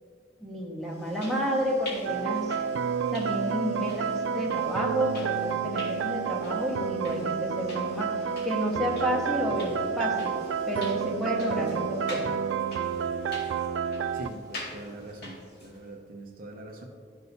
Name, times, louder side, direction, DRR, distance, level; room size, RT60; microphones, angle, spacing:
voice 1, 0.4-2.5 3.1-10.4 10.7-12.3, equal, ahead, -3 dB, 1.2 m, -30 dB
sound 1, 0.9-15.9, left 1 dB, 60° left, 2.1 m, -46 dB
sound 2, 2.1-14.3, right 7 dB, 85° right, 0.3 m, -30 dB
voice 2, 14.1-16.9, right 1 dB, 50° right, 1 dB, 0.8 m, -43 dB
12.5 x 6.3 x 2.7 m, 2.1 s
head